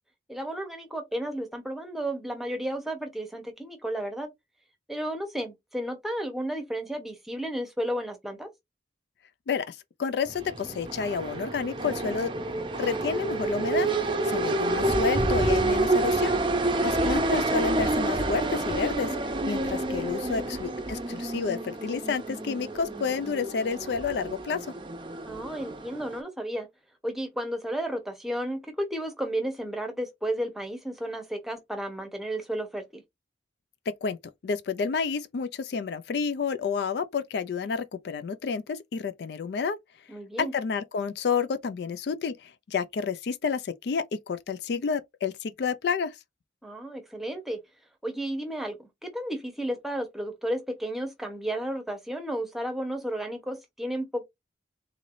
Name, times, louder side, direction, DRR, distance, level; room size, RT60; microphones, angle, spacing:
voice 1, 0.3-4.3 4.9-8.5 16.7-17.2 20.2-20.5 25.2-26.7 27.0-33.0 40.1-40.5 46.6-47.6 48.0-54.2, right 1 dB, ahead, 0.9 m, -33 dB
voice 2, 9.5-12.3 12.8-13.9 14.2-16.3 16.8-24.7 33.9-34.2 34.4-39.8 40.4-46.2, left 5 dB, 60° left, 0.3 m, -30 dB
sound 1, 10.3-26.2, right 2 dB, 25° right, 0.5 m, -28 dB
3.7 x 3.2 x 2.5 m
head